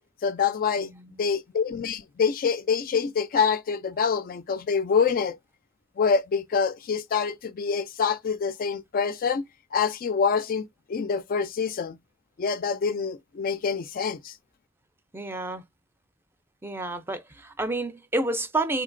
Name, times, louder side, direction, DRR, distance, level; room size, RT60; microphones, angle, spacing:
voice 1, 0.2-0.9 1.2-5.4 6.0-9.4 9.7-12.0 12.4-14.3, left 6 dB, 45° left, 0.4 m, -26 dB
voice 2, 0.8-1.2 15.1-15.6 16.6-18.8, right 2 dB, 10° right, 0.5 m, -30 dB
3.8 x 2.8 x 2.5 m
head